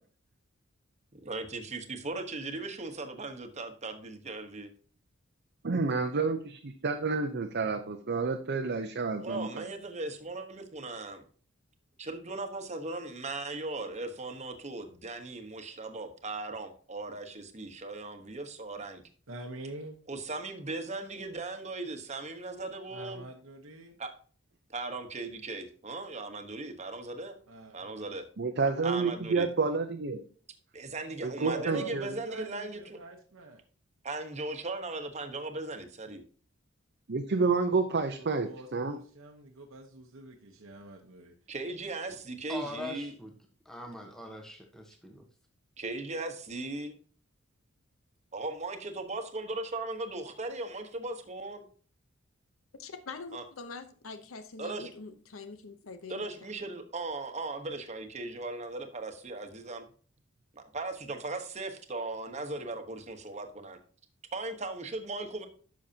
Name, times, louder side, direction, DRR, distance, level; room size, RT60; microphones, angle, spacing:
voice 1, 1.3-4.7 9.2-11.2 12.0-19.0 20.1-23.2 24.0-24.1 24.7-27.4 27.7-28.2 28.8-29.5 30.7-33.0 34.0-36.2 41.5-43.1 45.8-47.0 48.3-51.6 53.3-53.4 54.6-54.9 56.1-59.8 60.5-63.8 64.3-65.5, right 2 dB, 35° right, 1.2 m, -38 dB
voice 2, 5.6-9.6 28.4-30.2 31.2-32.1 37.1-39.0, right 4 dB, 55° right, 0.7 m, -29 dB
voice 3, 19.3-20.0 22.9-24.0 27.5-28.1 31.4-33.6 38.2-41.3, right 3 dB, 80° right, 1.0 m, -44 dB
voice 4, 42.5-43.3 43.6-45.3, left 2 dB, ahead, 1.0 m, -42 dB
voice 5, 52.8-56.3 56.7-56.8, left 4 dB, 85° left, 0.8 m, -44 dB
10.5 x 6.4 x 2.8 m
head